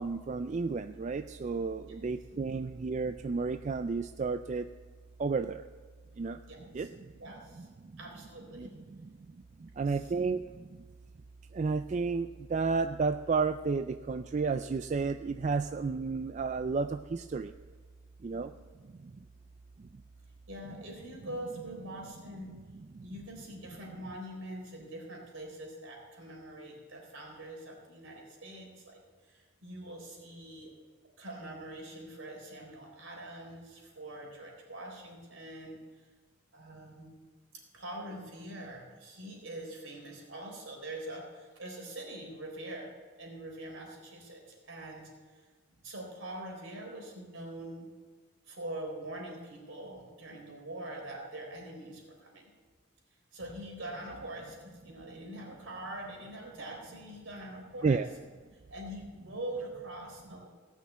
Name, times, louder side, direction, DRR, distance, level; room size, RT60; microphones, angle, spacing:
voice 1, 0.0-4.7 5.2-5.6 6.2-6.4 6.7-6.9 7.6-7.7 8.5-8.7 9.8-10.4 11.5-17.5 18.2-18.5 57.8-58.1, right 4 dB, 35° right, 9 dB, 0.3 m, -31 dB
voice 2, 6.5-6.9 7.2-7.7 8.0-8.7 9.9-10.1 18.3-18.4 20.5-22.5 23.0-30.7 31.2-36.1 36.5-37.1 37.7-45.4 45.7-47.9 48.5-52.5 53.3-58.0 58.7-60.5, right 1 dB, 70° right, 0 dB, 3.9 m, -44 dB
17.5 x 6.3 x 8.1 m, 1.5 s
head